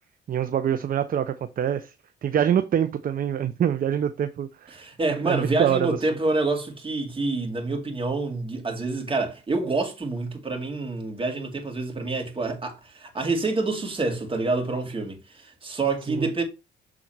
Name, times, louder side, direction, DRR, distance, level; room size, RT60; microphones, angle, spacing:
voice 1, 0.3-1.9 2.2-4.8 5.2-6.0 16.1-16.3, right 9 dB, 45° right, 0.6 m, -25 dB
voice 2, 4.7-16.4, right 3 dB, 25° right, 2.4 m, -27 dB
7.2 x 3.8 x 4.5 m
cardioid pair, 90°, 20 cm